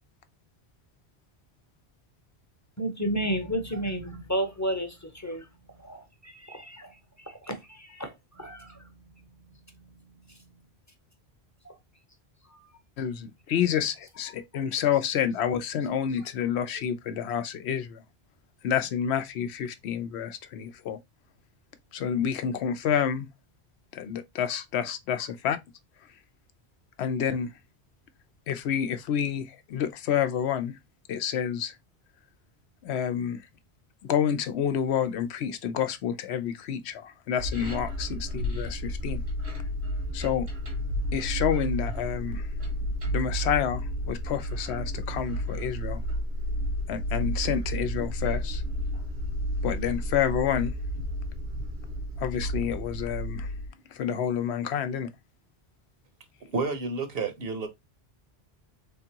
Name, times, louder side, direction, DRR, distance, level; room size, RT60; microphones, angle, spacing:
voice 1, 2.8-5.5 5.8-6.9 7.3-8.9 11.6-11.7 12.5-12.6, right 1 dB, 20° left, 0.7 m, -32 dB
voice 2, 13.0-18.0 18.6-21.0 21.9-23.3 23.9-25.6 27.0-27.5 28.5-30.7 31.1-31.7 32.8-33.4 34.0-39.2 40.1-40.5 41.1-42.5 43.1-43.8 44.1-46.0 46.9-48.6 49.6-50.7 52.2-53.5 53.9-55.1, left 9 dB, 85° left, 0.9 m, -29 dB
sound 1, 37.4-53.7, equal, 85° right, 1.9 m, -32 dB
voice 3, 56.4-57.7, right 4 dB, 65° right, 1.1 m, -30 dB
3.6 x 3.5 x 2.8 m
omnidirectional pair, 1.1 m